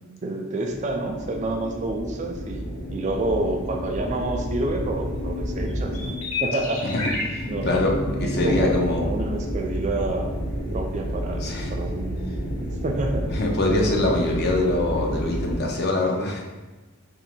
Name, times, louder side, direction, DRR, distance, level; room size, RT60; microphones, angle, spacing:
voice 1, 0.2-7.1 7.5-10.3 10.7-11.4 11.7-13.4, right 2 dB, 35° right, 2 dB, 0.3 m, -29 dB
sound 1, 0.7-15.6, equal, 90° left, 1.0 m, -30 dB
voice 2, 7.3-9.1 11.4-11.7 13.3-16.4, left 2 dB, 50° left, 0 dB, 0.6 m, -24 dB
3.0 x 2.7 x 4.3 m, 1.2 s
head